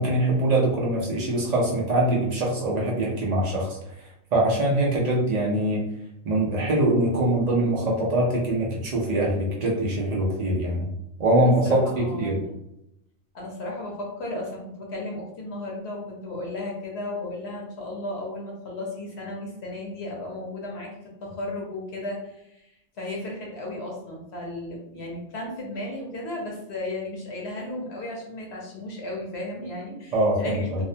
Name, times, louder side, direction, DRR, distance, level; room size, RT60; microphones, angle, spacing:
voice 1, 0.0-3.8 4.3-5.8 6.2-10.9 11.2-12.4 30.1-30.8, right 1 dB, 90° right, -3 dB, 0.3 m, -23 dB
voice 2, 11.6-12.5 13.3-20.9 21.2-22.7 23.0-30.8, left 1 dB, 60° left, -2 dB, 0.8 m, -34 dB
2.5 x 2.1 x 2.6 m, 0.82 s
omnidirectional pair, 1.4 m